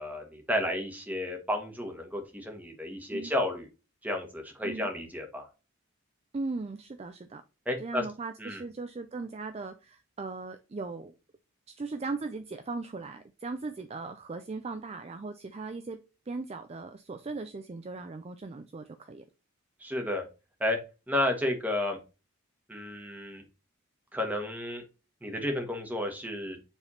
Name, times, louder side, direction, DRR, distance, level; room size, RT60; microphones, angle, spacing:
voice 1, 0.0-3.7 4.0-5.4 7.7-8.0 8.4-8.6 19.8-20.2 20.6-20.8 21.1-22.0 22.7-23.4 24.1-24.8 25.2-26.6, left 1 dB, 5° right, 3 dB, 1.3 m, -32 dB
voice 2, 6.3-7.4 7.8-11.1 11.7-16.0 16.3-19.3, right 3 dB, 30° right, 9 dB, 0.4 m, -38 dB
7.2 x 3.4 x 4.1 m, 0.30 s
head